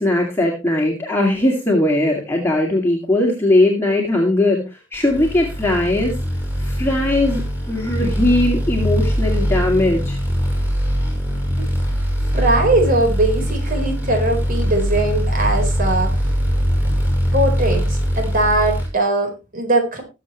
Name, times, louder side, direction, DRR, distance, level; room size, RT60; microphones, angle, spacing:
voice 1, 0.0-4.6 4.9-6.1 6.6-7.4 7.7-10.2, left 1 dB, 10° left, -2 dB, 2.3 m, -19 dB
sound 1, 5.1-18.9, equal, 10° right, 5.7 m, -21 dB
voice 2, 12.3-16.2 17.3-20.0, right 2 dB, 45° right, 3 dB, 4.3 m, -20 dB
20.0 x 7.5 x 3.1 m, 0.27 s
head